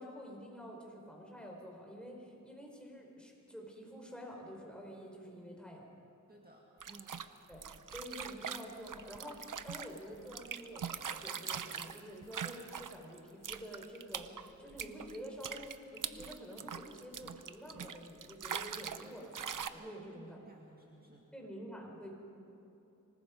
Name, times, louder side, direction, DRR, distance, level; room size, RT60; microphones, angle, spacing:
voice 1, 0.0-5.8 7.5-19.3 19.7-20.4 21.3-22.1, equal, 5° left, -1 dB, 4.8 m, -48 dB
voice 2, 6.3-7.3 19.8-21.3, right 2 dB, 30° right, -1 dB, 2.0 m, -57 dB
sound 1, 6.8-13.2 13.4-19.1 19.3-19.7, right 7 dB, 75° right, 0.8 m, -42 dB
26.0 x 19.5 x 5.3 m, 2.9 s
wide cardioid pair, 70°, 32 cm